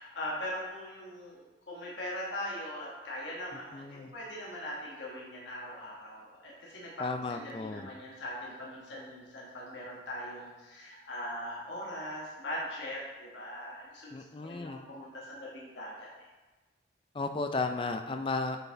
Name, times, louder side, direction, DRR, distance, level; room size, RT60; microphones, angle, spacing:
voice 1, 0.0-6.9 7.3-16.1, left 1 dB, 70° left, -4 dB, 1.4 m, -41 dB
voice 2, 3.7-4.1 7.0-7.9 14.1-14.8 17.1-18.6, left 3 dB, 25° left, 7 dB, 0.4 m, -34 dB
6.6 x 4.4 x 4.5 m, 1.2 s
head